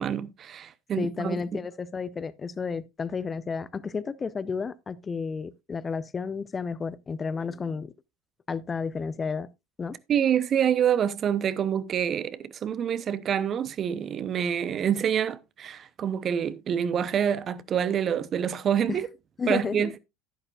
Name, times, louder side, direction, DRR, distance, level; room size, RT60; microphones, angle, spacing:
voice 1, 0.0-1.4 10.1-19.1 19.5-20.0, right 8 dB, 35° right, 0.7 m, -27 dB
voice 2, 1.0-7.9 8.5-9.5 9.8-10.0 18.9-19.0 19.4-19.9, left 5 dB, 25° left, 0.5 m, -32 dB
11.0 x 11.0 x 2.4 m
figure-of-eight pair, 75°, 0 cm